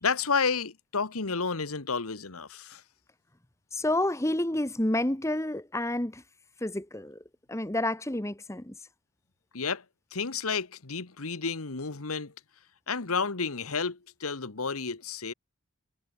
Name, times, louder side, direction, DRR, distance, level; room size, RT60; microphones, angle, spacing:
voice 1, 0.0-2.8 9.5-9.8 10.1-12.3 12.9-15.3, left 5 dB, 80° left, 1.5 m, -31 dB
voice 2, 3.7-6.2 6.6-7.2 7.5-8.8, left 1 dB, 15° left, 1.2 m, -29 dB
head